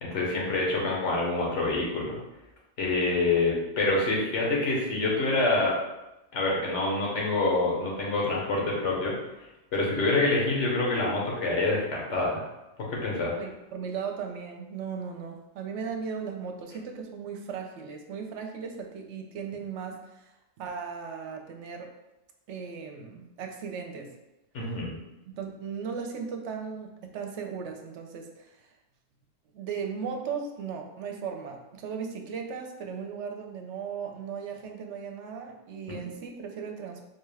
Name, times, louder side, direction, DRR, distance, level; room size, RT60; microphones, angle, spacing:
voice 1, 0.0-2.2 2.8-5.8 6.3-9.2 9.7-12.5 12.8-13.4 24.5-24.9, left 2 dB, 85° left, -3 dB, 1.3 m, -26 dB
voice 2, 13.4-20.3 20.6-21.9 22.5-24.1 25.3-28.6 29.5-37.0, right 6 dB, 85° right, 3 dB, 0.9 m, -37 dB
4.4 x 2.3 x 3.2 m, 0.97 s
omnidirectional pair, 1.2 m